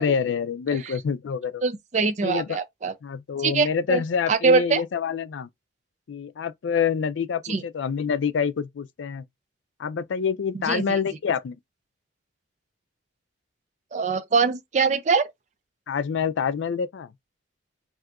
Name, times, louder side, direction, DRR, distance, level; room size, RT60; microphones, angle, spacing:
voice 1, 0.0-1.6 2.2-2.6 3.0-5.5 6.1-9.2 9.8-11.6 15.9-17.1, left 6 dB, 75° left, 0.4 m, -26 dB
voice 2, 1.6-2.9 3.4-4.0 4.3-4.8 7.4-7.6 10.7-10.8 13.9-15.3, right 4 dB, 40° right, 0.4 m, -23 dB
2.7 x 2.4 x 3.4 m
head